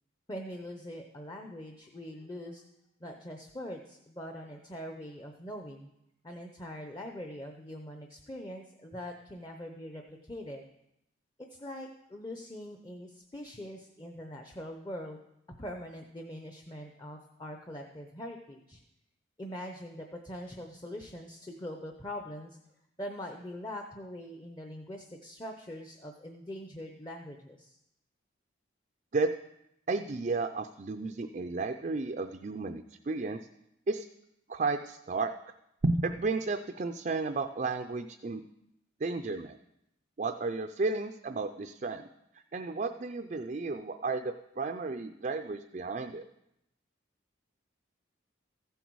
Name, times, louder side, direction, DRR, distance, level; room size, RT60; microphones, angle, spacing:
voice 1, 0.3-2.6 3.0-5.9 6.2-10.6 11.5-15.2 15.6-18.8 19.4-22.6 23.0-27.8, equal, 20° left, 3 dB, 0.7 m, -43 dB
voice 2, 29.9-33.4 33.9-34.0 34.5-35.3 35.8-38.4 39.0-39.6 40.2-42.1 42.5-46.2, right 3 dB, 40° right, 6 dB, 0.4 m, -33 dB
14.5 x 8.0 x 4.7 m, 0.83 s
head